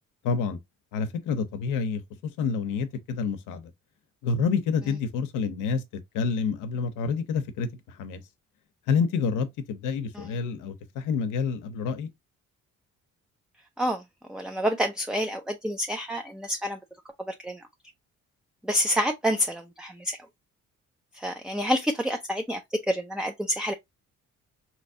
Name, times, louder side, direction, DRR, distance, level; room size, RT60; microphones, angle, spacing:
voice 1, 0.2-0.6 0.9-2.0 2.4-3.7 4.2-5.8 6.1-8.2 8.9-12.1, left 5 dB, 90° left, 0.7 m, -28 dB
voice 2, 14.3-16.8 17.2-17.6 18.6-20.2 21.1-22.6 22.9-23.7, equal, 5° right, 0.4 m, -28 dB
3.3 x 3.0 x 2.6 m
cardioid pair, 90°, 30 cm